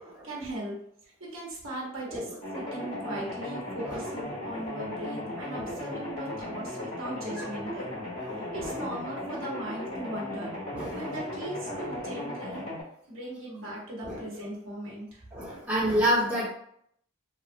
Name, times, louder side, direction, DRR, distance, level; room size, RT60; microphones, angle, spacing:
voice 1, 0.2-0.8 1.2-7.9 8.3-10.6 10.9-12.7 13.1-15.2 15.6-15.7, right 1 dB, 70° right, -4 dB, 1.0 m, -38 dB
sound 1, 2.4-12.8, left 1 dB, 90° left, 1.5 m, -36 dB
voice 2, 10.7-11.1 11.7-11.9 14.0-14.2 15.3-16.5, equal, 10° right, -9 dB, 1.1 m, -29 dB
3.2 x 2.3 x 2.5 m, 0.69 s
head